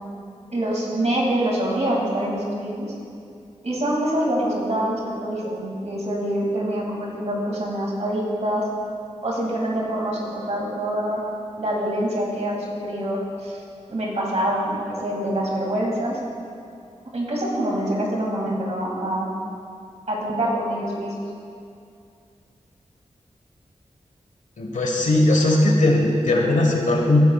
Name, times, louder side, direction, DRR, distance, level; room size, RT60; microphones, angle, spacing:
voice 1, 0.5-2.9 3.6-8.7 9.2-11.3 11.6-13.6 13.9-16.2 17.1-19.3 20.1-21.1, right 1 dB, 65° right, -3 dB, 2.3 m, -25 dB
voice 2, 24.6-27.2, left 1 dB, 90° left, 1 dB, 1.3 m, -19 dB
15.5 x 9.4 x 2.4 m, 2.5 s
wide cardioid pair, 70°, 12 cm